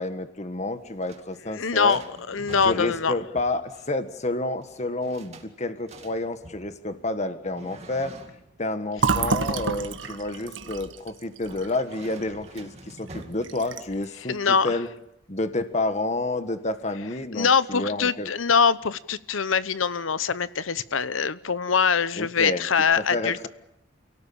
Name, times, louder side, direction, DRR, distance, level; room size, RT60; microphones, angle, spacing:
voice 1, 0.0-2.0 2.6-8.1 8.6-14.9 15.3-18.3 22.2-22.6 23.0-23.5, left 2 dB, 35° left, 9 dB, 1.6 m, -29 dB
sound 1, 0.6-14.3, right 2 dB, 35° right, 2.4 m, -48 dB
voice 2, 1.5-2.0 2.3-3.1 14.3-14.8 17.3-23.5, left 6 dB, 85° left, 16 dB, 0.9 m, -23 dB
Fill (with liquid), 9.0-12.6 13.0-13.1 13.4-14.0, right 4 dB, 70° right, 1.5 m, -29 dB
29.0 x 18.0 x 8.7 m, 0.83 s
head